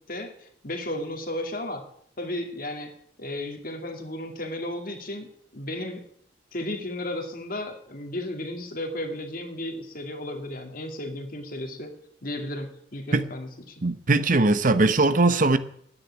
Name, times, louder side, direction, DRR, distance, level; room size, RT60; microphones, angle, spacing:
voice 1, 0.1-1.8 2.2-2.9 3.2-5.3 5.5-6.0 6.5-11.9 12.2-13.8, left 1 dB, 50° left, 4 dB, 2.3 m, -34 dB
voice 2, 13.8-15.6, right 2 dB, 45° right, 12 dB, 0.8 m, -20 dB
10.0 x 9.6 x 9.8 m, 0.66 s
head